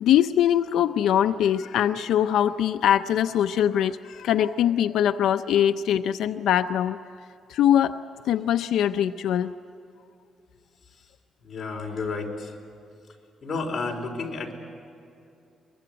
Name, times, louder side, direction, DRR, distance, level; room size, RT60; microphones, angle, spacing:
voice 1, 0.0-7.0 7.5-8.0 8.2-9.5, left 10 dB, 85° left, 9 dB, 0.5 m, -22 dB
voice 2, 11.4-12.5 13.4-14.5, left 3 dB, 30° left, -1 dB, 4.3 m, -31 dB
23.5 x 22.5 x 8.9 m, 2.6 s
cardioid pair, 150°, 0 cm